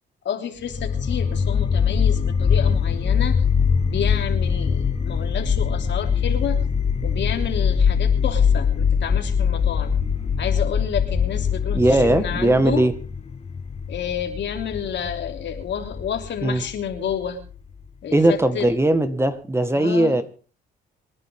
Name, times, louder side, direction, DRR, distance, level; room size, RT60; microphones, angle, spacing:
voice 1, 0.2-3.4 3.9-6.6 7.0-9.9 10.4-12.8 13.9-17.4 18.0-18.7 19.7-20.2, left 8 dB, 65° left, 5 dB, 3.3 m, -30 dB
sound 1, 0.7-17.7, left 6 dB, 30° left, 1.8 m, -22 dB
voice 2, 11.7-12.9 16.4-16.6 18.1-20.2, right 1 dB, 15° right, 10 dB, 1.7 m, -19 dB
27.0 x 10.5 x 3.7 m, 0.38 s
cardioid pair, 90°, 20 cm